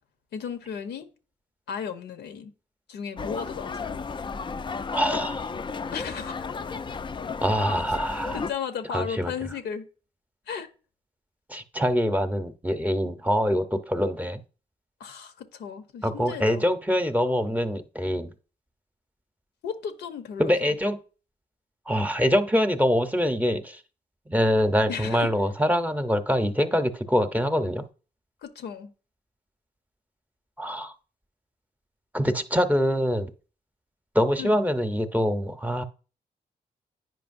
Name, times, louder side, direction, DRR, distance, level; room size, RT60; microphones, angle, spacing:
voice 1, 0.3-1.1 1.7-2.5 2.9-4.0 5.9-6.5 8.3-9.9 10.5-10.7 15.0-16.7 19.6-20.7 24.9-25.3 28.4-28.9 34.4-34.6, left 7 dB, 85° left, 0.8 m, -35 dB
sound 1, 3.2-8.5, left 5 dB, 30° left, 0.4 m, -33 dB
voice 2, 4.9-5.5 7.4-8.4 8.9-9.3 11.5-14.4 16.0-18.3 20.4-21.0 21.9-23.8 24.3-27.8 30.6-30.9 32.1-33.3 34.1-35.8, equal, 10° right, 0.8 m, -24 dB
9.1 x 5.1 x 2.6 m
cardioid pair, 60°, 17 cm